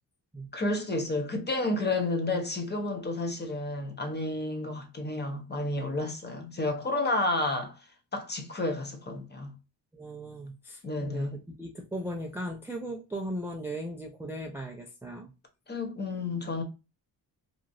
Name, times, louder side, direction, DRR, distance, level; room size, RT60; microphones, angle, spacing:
voice 1, 0.5-7.8 8.1-9.5 10.8-11.4 15.7-16.6, left 2 dB, 25° left, 0.8 m, -31 dB
voice 2, 9.9-15.3, right 1 dB, 5° right, 0.4 m, -37 dB
3.0 x 2.5 x 2.5 m
cardioid pair, 85°, 41 cm